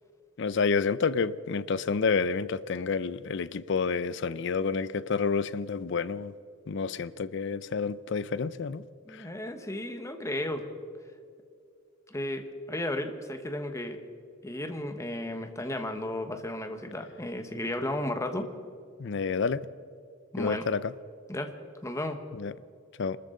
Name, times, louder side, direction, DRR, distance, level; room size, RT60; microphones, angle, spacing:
voice 1, 0.4-6.3 6.7-8.8 9.1-9.3 19.0-19.7 20.4-20.9 22.3-22.5 23.0-23.2, left 5 dB, 65° left, 0.5 m, -29 dB
voice 2, 9.1-10.7 12.1-14.0 14.4-18.5 20.3-20.7 21.3-21.5 21.8-22.2, left 1 dB, 15° left, 1.2 m, -34 dB
26.0 x 13.5 x 3.9 m
head